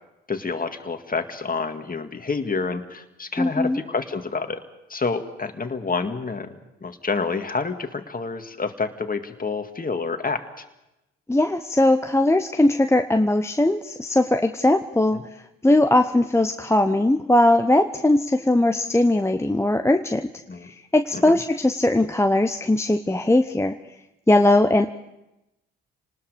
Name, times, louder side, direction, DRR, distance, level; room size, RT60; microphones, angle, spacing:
voice 1, 0.3-4.6 4.9-10.6 15.1-15.2 20.5-20.7 21.1-21.4, left 4 dB, 30° left, 7 dB, 2.1 m, -28 dB
voice 2, 3.4-3.8 11.3-15.2 15.6-20.3 20.6-23.8 24.3-24.9, left 1 dB, 10° left, 7 dB, 0.9 m, -19 dB
28.0 x 19.5 x 5.1 m, 0.93 s
hypercardioid pair, 45°, 30 cm